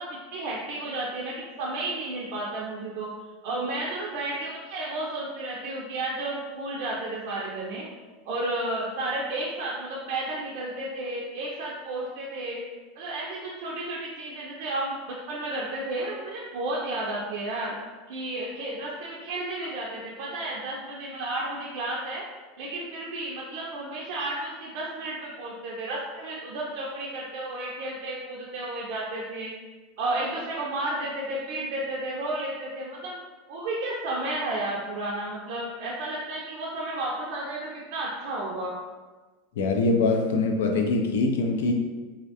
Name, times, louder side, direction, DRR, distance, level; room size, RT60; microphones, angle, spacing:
voice 1, 0.0-3.1 3.4-7.9 8.3-12.6 13.0-17.7 18.1-22.2 22.6-29.5 30.0-33.1 33.5-38.8, right 2 dB, 65° right, -4 dB, 0.4 m, -32 dB
voice 2, 39.6-41.7, left 3 dB, 90° left, 3 dB, 0.3 m, -23 dB
2.4 x 2.1 x 2.7 m, 1.3 s
supercardioid pair, 145°, 0 cm